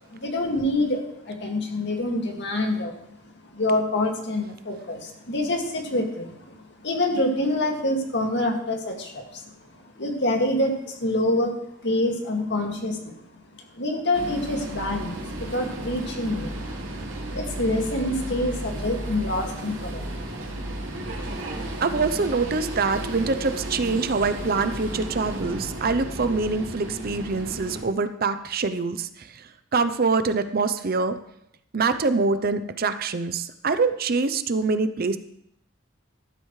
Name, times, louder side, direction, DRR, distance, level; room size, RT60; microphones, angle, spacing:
voice 1, 0.1-3.0 3.5-9.5 10.0-11.5 11.8-13.1 13.5-16.6 17.0-17.1 17.3-20.5, left 1 dB, 60° left, 2 dB, 2.2 m, -26 dB
sound 1, 14.1-27.8, right 1 dB, 90° right, 2.7 m, -33 dB
voice 2, 21.8-31.2 31.7-35.2, right 4 dB, 50° right, 11 dB, 0.6 m, -25 dB
13.0 x 12.5 x 3.2 m, 0.77 s
head